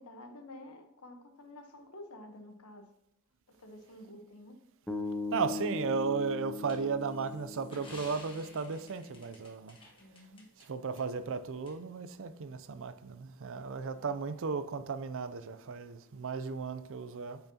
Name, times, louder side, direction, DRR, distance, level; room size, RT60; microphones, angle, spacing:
voice 1, 0.0-2.9 3.5-4.6 10.0-10.5 13.9-14.1, left 1 dB, 80° left, 1.1 m, -50 dB
sound 1, 4.9-9.0, left 3 dB, 5° left, 0.6 m, -39 dB
voice 2, 5.3-9.8 10.7-17.4, right 5 dB, 60° right, 0.5 m, -35 dB
sound 2, 6.7-10.7 11.0-11.1 11.7-11.8, left 2 dB, 25° left, 1.5 m, -53 dB
8.9 x 5.7 x 2.9 m
head